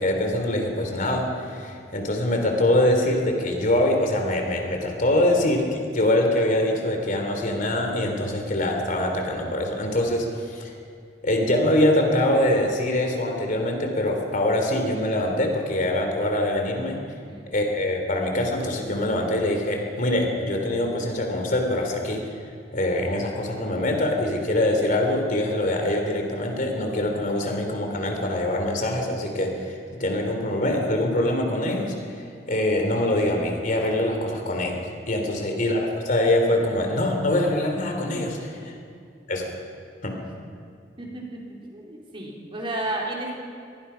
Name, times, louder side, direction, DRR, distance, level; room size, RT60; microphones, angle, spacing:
voice 1, 0.0-10.7 11.2-17.0 17.5-22.2 22.7-31.9 32.5-34.8 35.1-38.7 39.3-39.5 40.0-40.1, left 1 dB, 45° left, 3 dB, 3.3 m, -24 dB
voice 2, 41.0-43.3, right 1 dB, 30° right, -2 dB, 4.0 m, -33 dB
25.5 x 20.0 x 5.8 m, 2.3 s
head